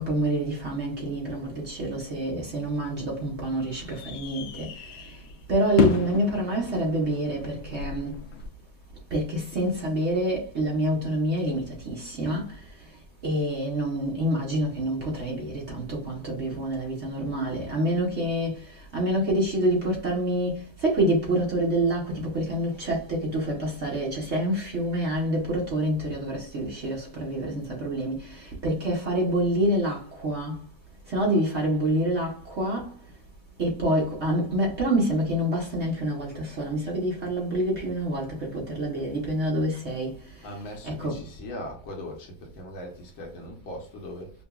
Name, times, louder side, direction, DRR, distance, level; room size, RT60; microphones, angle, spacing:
voice 1, 0.0-4.9 5.5-8.2 9.1-12.6 13.2-30.6 31.1-32.9 33.6-40.5 40.8-41.2, right 1 dB, 55° right, 0.8 m, -27 dB
sound 1, 2.5-8.5, left 7 dB, 90° left, 1.5 m, -33 dB
voice 2, 40.4-44.3, left 1 dB, 70° left, 1.6 m, -39 dB
5.8 x 2.2 x 2.3 m
omnidirectional pair, 2.3 m